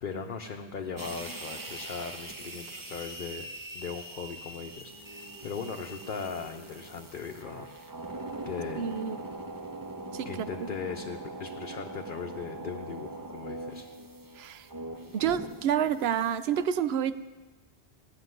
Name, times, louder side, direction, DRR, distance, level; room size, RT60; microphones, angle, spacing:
voice 1, 0.0-3.5 3.7-7.7 8.5-8.8 10.2-13.9, left 6 dB, 55° left, 3 dB, 0.9 m, -38 dB
sound 1, 1.0-16.7, right 2 dB, 20° right, 0.8 m, -42 dB
voice 2, 8.8-9.2 10.1-10.7 14.4-14.6 15.1-17.2, right 8 dB, 80° right, 14 dB, 0.9 m, -29 dB
14.5 x 6.8 x 9.5 m, 1.2 s
omnidirectional pair, 1.1 m